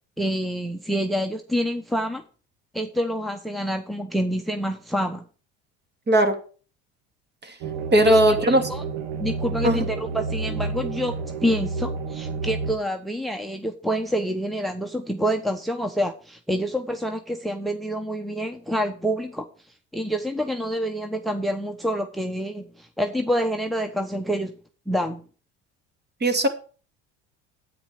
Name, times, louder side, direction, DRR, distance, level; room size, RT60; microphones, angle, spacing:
voice 1, 0.2-2.2 2.7-5.2 8.1-8.3 8.7-8.8 9.2-11.1 11.4-19.5 19.9-24.6 24.9-25.2, equal, ahead, 7 dB, 1.1 m, -27 dB
voice 2, 6.1-6.4 7.4-7.5 7.9-8.7 9.6-9.8 26.2-26.5, right 1 dB, 30° right, 7 dB, 2.6 m, -18 dB
sound 1, 7.6-12.7, right 4 dB, 80° right, 1.5 m, -30 dB
9.6 x 8.8 x 4.8 m, 0.38 s
hypercardioid pair, 70°, 34 cm